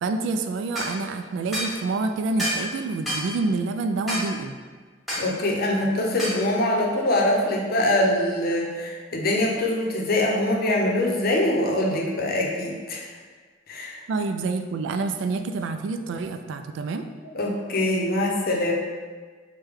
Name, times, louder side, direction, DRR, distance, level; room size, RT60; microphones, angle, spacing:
voice 1, 0.0-4.5 14.1-17.0, right 3 dB, 70° right, 7 dB, 0.3 m, -27 dB
sound 1, 0.7-0.9 1.5-1.7 2.4-2.7 3.1-3.3 4.1-4.3 5.1-5.3 6.2-6.4, equal, ahead, 1.0 m, -28 dB
voice 2, 5.2-13.0 13.7-14.0 17.3-18.7, left 1 dB, 55° left, -1 dB, 0.6 m, -23 dB
4.7 x 2.2 x 3.4 m, 1.5 s
head